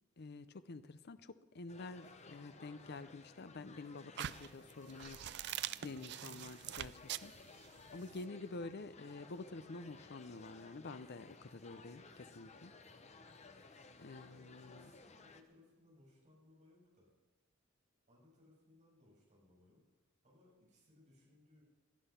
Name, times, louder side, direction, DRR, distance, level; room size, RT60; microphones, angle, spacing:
voice 1, 0.2-5.2 5.8-7.3 7.9-12.7 14.0-14.9, left 3 dB, 50° left, 13 dB, 0.6 m, -49 dB
sound 1, 1.7-15.4, left 3 dB, 35° left, 1.0 m, -58 dB
sound 2, 4.2-8.2, right 11 dB, 55° right, 0.4 m, -44 dB
voice 2, 14.2-17.1 18.1-19.8 20.2-21.6, left 2 dB, 35° right, -4 dB, 6.9 m, -66 dB
18.0 x 11.0 x 5.8 m, 1.1 s
head